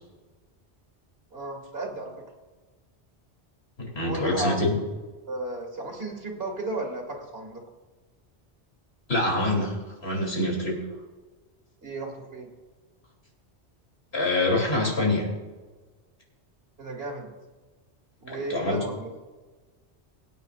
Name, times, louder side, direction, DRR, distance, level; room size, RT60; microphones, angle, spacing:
voice 1, 1.3-2.1 4.0-4.6 5.3-7.6 11.8-12.5 16.8-17.3 18.2-19.1, right 2 dB, 60° right, 1 dB, 2.4 m, -34 dB
voice 2, 3.8-4.7 9.1-9.7 10.0-10.8 14.1-15.3 18.3-18.8, left 2 dB, 65° left, -1 dB, 3.3 m, -25 dB
23.0 x 9.1 x 2.5 m, 1.3 s
omnidirectional pair, 1.2 m